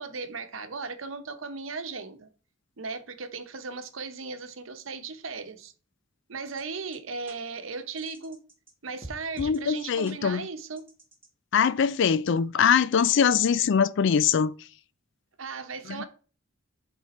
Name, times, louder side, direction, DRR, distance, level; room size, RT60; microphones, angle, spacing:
voice 1, 0.0-2.3 2.8-5.7 6.3-8.4 8.8-10.9 15.4-16.0, right 4 dB, 70° right, 0.9 m, -37 dB
sound 1, 6.6-6.7 6.9-7.0 7.3-7.4 8.0-8.7 9.0-9.6 10.1-10.2 10.8-11.3, right 1 dB, 10° right, 1.6 m, -44 dB
voice 2, 9.4-10.4 11.5-14.5 15.9-16.0, left 7 dB, 60° left, 0.4 m, -22 dB
8.7 x 3.6 x 4.2 m
head